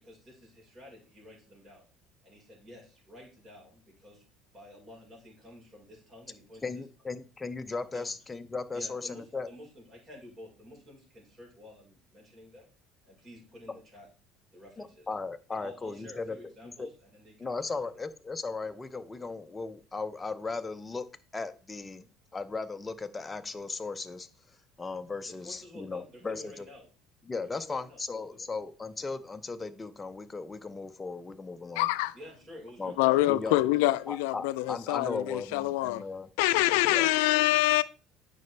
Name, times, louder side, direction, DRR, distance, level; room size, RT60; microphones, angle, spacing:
voice 1, 0.0-1.8 2.2-4.2 4.5-6.7 7.9-8.1 8.7-12.7 13.0-14.1 14.5-15.1 15.5-17.7 25.3-26.9 27.6-28.5 32.1-34.0, left 1 dB, 30° right, 4.7 m, -50 dB
voice 2, 6.6-9.5 14.8-16.4 16.6-16.9 17.4-21.1 21.3-22.0 22.3-24.3 24.8-26.7 27.2-31.9 32.8-33.0 33.3-33.5 34.1-36.3 36.9-37.1, left 4 dB, 20° left, 0.7 m, -37 dB
voice 3, 31.8-32.1 33.0-36.0 36.4-37.8, left 17 dB, 90° left, 0.4 m, -25 dB
9.0 x 5.4 x 3.3 m
supercardioid pair, 105°, 0 cm